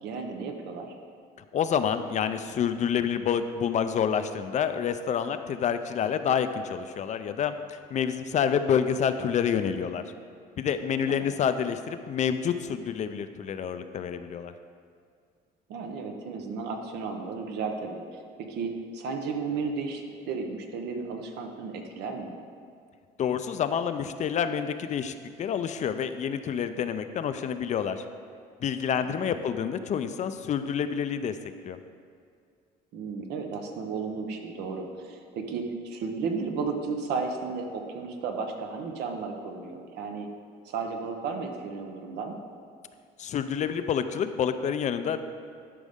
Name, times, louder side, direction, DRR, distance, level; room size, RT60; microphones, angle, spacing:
voice 1, 0.0-0.9 11.1-11.3 15.7-18.2 18.5-22.3 29.1-29.3 32.9-40.3 40.7-42.3, right 4 dB, 80° right, 4 dB, 0.9 m, -34 dB
voice 2, 1.5-10.0 10.6-14.5 23.2-28.0 28.6-31.3 31.6-31.8 43.2-45.3, left 7 dB, 45° left, 10 dB, 0.4 m, -28 dB
12.0 x 5.2 x 3.6 m, 2.2 s
cardioid pair, 110°, 17 cm